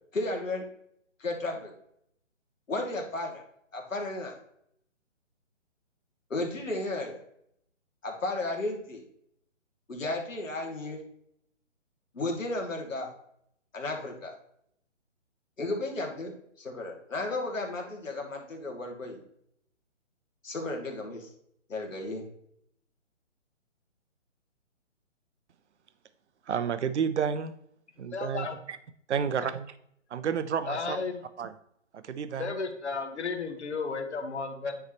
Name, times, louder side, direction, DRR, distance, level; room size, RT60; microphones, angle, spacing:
voice 1, 0.1-0.6 1.2-1.7 2.7-3.4 3.7-4.3 6.3-7.2 8.0-9.0 9.9-11.0 12.1-13.1 13.7-14.3 15.6-16.3 16.6-19.2 20.4-21.3 21.7-22.2, left 2 dB, 80° left, 2 dB, 2.2 m, -33 dB
voice 2, 26.5-27.5 28.0-28.8 29.1-29.7 30.1-31.0 31.4-31.5 31.9-32.5, right 7 dB, 60° right, 12 dB, 0.8 m, -30 dB
voice 3, 28.1-28.6 30.6-31.2 32.3-34.8, left 4 dB, 60° left, 6 dB, 1.5 m, -33 dB
9.8 x 4.8 x 2.9 m, 0.70 s
hypercardioid pair, 155°, 38 cm